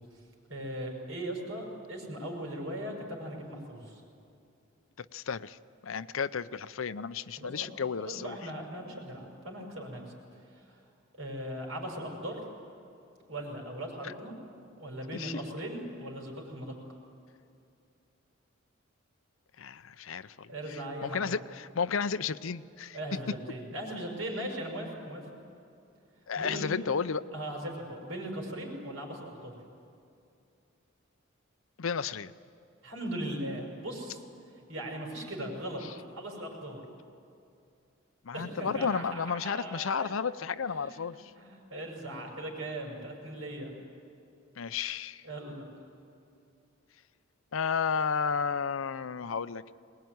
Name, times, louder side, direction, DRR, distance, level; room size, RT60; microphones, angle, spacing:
voice 1, 0.5-4.0 7.4-7.7 8.0-10.1 10.5-10.8 11.2-12.4 13.3-14.3 14.8-16.7 20.5-21.4 22.9-25.2 26.4-26.6 27.3-29.5 32.8-34.2 34.7-35.8 36.2-36.8 38.3-40.1 40.7-43.7 45.2-45.6, right 1 dB, 85° right, 1 dB, 6.1 m, -39 dB
voice 2, 5.0-5.6 5.8-8.4 15.1-15.4 19.6-23.0 26.3-27.2 31.8-32.3 38.2-41.3 44.6-45.2 47.5-49.6, left 6 dB, 80° left, 14 dB, 0.6 m, -32 dB
22.5 x 20.0 x 9.5 m, 2.6 s
head